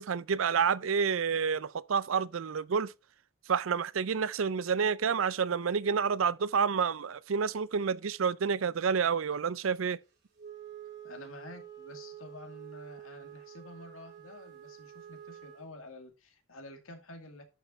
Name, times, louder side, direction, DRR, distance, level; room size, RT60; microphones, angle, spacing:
voice 1, 0.0-2.9 3.5-10.0, right 6 dB, 75° right, 0.5 m, -29 dB
Wind instrument woodwind instrument, 10.4-15.7, right 10 dB, 55° right, 4.0 m, -48 dB
voice 2, 10.8-17.4, left 2 dB, 85° left, 2.2 m, -49 dB
11.0 x 5.8 x 4.3 m
head